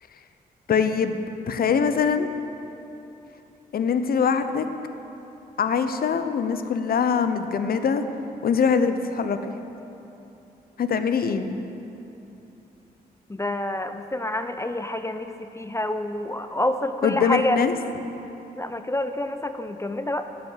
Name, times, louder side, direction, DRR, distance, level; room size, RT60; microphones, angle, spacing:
voice 1, 0.7-1.2 1.5-2.3 3.7-4.7 5.6-8.0 8.4-9.5 10.8-11.6 17.0-17.7, left 6 dB, 65° left, 9 dB, 0.7 m, -23 dB
voice 2, 13.3-17.6 18.6-20.3, left 1 dB, 15° left, 8 dB, 0.6 m, -27 dB
8.3 x 7.2 x 8.3 m, 2.9 s
cardioid pair, 55°, 17 cm